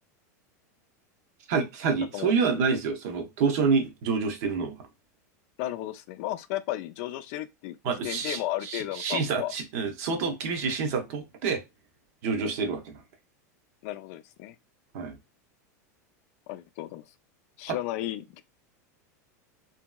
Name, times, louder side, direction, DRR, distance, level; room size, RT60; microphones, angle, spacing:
voice 1, 1.5-4.8 7.8-11.6 12.2-13.0 14.9-15.2 17.7-17.8, right 5 dB, 65° right, 0.8 m, -28 dB
voice 2, 5.6-9.5 13.8-14.5 16.5-17.0 17.6-18.4, left 14 dB, 60° left, 0.4 m, -34 dB
2.9 x 2.7 x 2.2 m
supercardioid pair, 120°, 9 cm